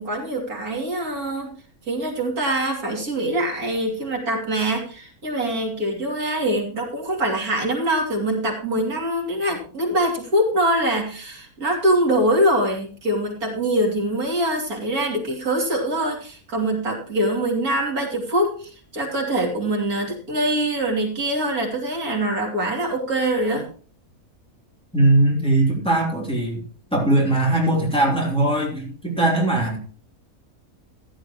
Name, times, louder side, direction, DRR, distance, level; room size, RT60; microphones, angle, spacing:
voice 1, 0.0-1.5 1.9-23.7, right 1 dB, 90° right, 0 dB, 3.4 m, -23 dB
voice 2, 24.9-26.6 26.9-29.8, right 2 dB, 5° left, -2 dB, 3.4 m, -20 dB
15.0 x 11.0 x 3.1 m, 0.41 s
omnidirectional pair, 1.5 m